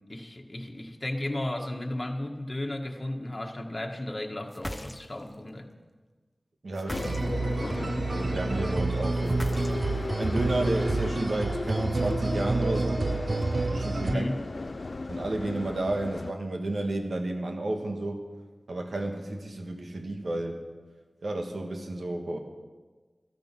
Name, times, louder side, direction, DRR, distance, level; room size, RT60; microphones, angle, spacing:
voice 1, 0.1-5.7 14.0-14.4, left 1 dB, 35° left, 2 dB, 1.7 m, -34 dB
sound 1, 4.5-5.3 6.7-7.6 9.3-10.1, equal, 10° left, 0.9 m, -38 dB
voice 2, 6.6-7.2 7.6-9.5 10.1-13.1 13.7-14.4 15.1-18.2 18.7-20.6 21.2-22.4, right 2 dB, 80° right, 4 dB, 1.6 m, -32 dB
sound 2, 6.9-16.3, left 3 dB, 65° left, 0.3 m, -36 dB
sound 3, 6.9-14.1, right 3 dB, 65° right, 0.6 m, -29 dB
15.0 x 13.0 x 6.1 m, 1.4 s
wide cardioid pair, 55°, 0 cm